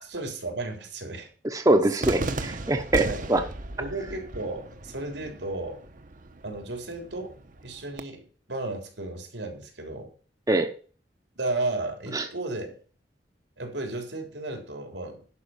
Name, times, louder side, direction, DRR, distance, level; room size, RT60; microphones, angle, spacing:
voice 1, 0.0-1.3 3.0-3.3 3.8-5.8 6.4-7.3 7.6-10.1 11.4-12.8 13.6-15.2, right 2 dB, 90° right, 3 dB, 3.5 m, -34 dB
voice 2, 1.5-3.4 10.5-10.7 12.1-12.3, right 2 dB, 20° right, 6 dB, 0.9 m, -23 dB
Cheering / Fireworks, 2.0-8.0, right 2 dB, 50° right, 1.0 m, -36 dB
11.0 x 5.4 x 7.0 m, 0.41 s
head